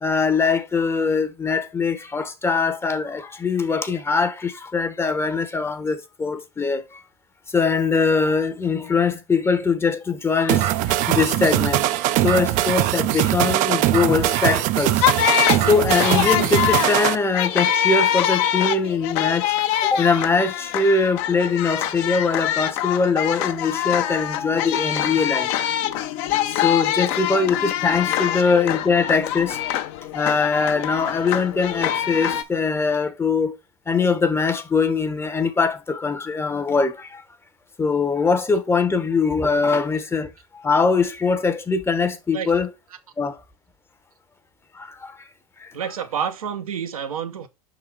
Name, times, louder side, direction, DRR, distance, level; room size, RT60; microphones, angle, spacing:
voice 1, 0.0-7.0 7.5-11.8 12.2-15.0 15.6-25.6 26.6-29.6 30.1-33.6 33.9-37.2 37.8-42.7 43.2-43.4 44.7-45.2 45.6-45.7, left 4 dB, 15° left, 0.8 m, -22 dB
sound 1, 10.5-17.1, right 14 dB, 45° right, 0.5 m, -21 dB
sound 2, 15.0-32.4, left 11 dB, 55° left, 0.7 m, -24 dB
voice 2, 45.7-47.5, right 8 dB, 85° right, 0.9 m, -29 dB
5.6 x 4.0 x 4.3 m
hypercardioid pair, 100°, 18 cm